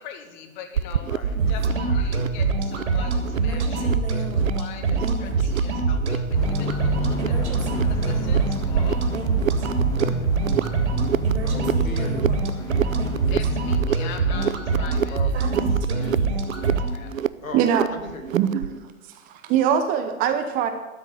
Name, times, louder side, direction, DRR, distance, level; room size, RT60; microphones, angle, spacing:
voice 1, 0.0-1.1 1.5-4.2 4.5-7.4 7.8-9.0 13.3-15.2 15.9-16.2 16.9-17.1, left 7 dB, 35° left, 7 dB, 1.8 m, -41 dB
sound 1, 0.7-18.8, right 9 dB, 75° right, 0.6 m, -30 dB
voice 2, 1.0-1.4 9.8-10.2 11.4-13.3 13.9-14.2 14.5-14.6 15.1-15.6 17.4-18.4, left 3 dB, 75° left, 6 dB, 2.2 m, -39 dB
sound 2, 1.2-16.9, right 4 dB, 55° right, 3.0 m, -24 dB
sound 3, 6.3-13.8, left 3 dB, 10° left, 0.8 m, -32 dB
voice 3, 17.5-17.9 18.3-18.7 19.1-20.7, right 9 dB, 20° right, 8 dB, 0.8 m, -22 dB
12.5 x 6.3 x 9.7 m, 1.1 s
figure-of-eight pair, 115°, 41 cm